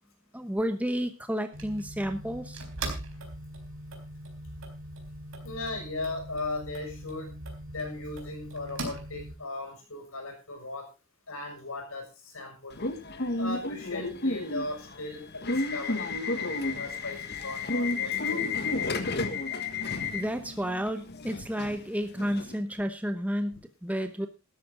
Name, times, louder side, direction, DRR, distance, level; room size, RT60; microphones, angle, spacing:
voice 1, 0.3-2.6 20.1-24.3, equal, 5° right, 7 dB, 0.9 m, -31 dB
sound 1, 1.5-9.3, right 2 dB, 70° right, 3.9 m, -40 dB
voice 2, 5.4-7.3 7.7-10.9 11.3-12.8 13.3-19.0 19.9-20.0, left 2 dB, 85° left, 3 dB, 6.4 m, -38 dB
Subway metro underground / Alarm, 12.7-22.5, left 3 dB, 50° left, 1.4 m, -32 dB
13.0 x 12.5 x 3.8 m, 0.30 s
head